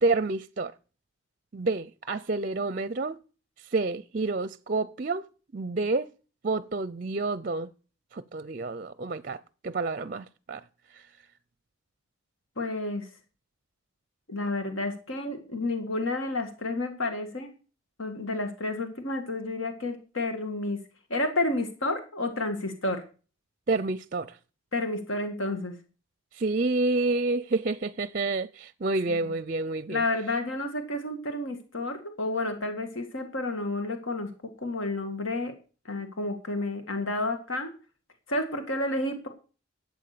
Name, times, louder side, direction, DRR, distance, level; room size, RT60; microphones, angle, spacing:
voice 1, 0.0-0.7 1.5-3.2 3.7-5.3 5.5-6.1 6.4-7.7 8.1-10.6 10.9-11.0 23.7-24.4 26.3-30.0, right 3 dB, 40° right, 0.5 m, -29 dB
voice 2, 12.6-13.1 14.3-17.5 18.0-20.8 21.1-23.0 24.7-25.8 29.1-29.2 29.9-34.3 34.6-35.5 35.9-37.7 38.3-39.3, left 2 dB, 75° left, 2.0 m, -30 dB
12.0 x 8.2 x 6.8 m
head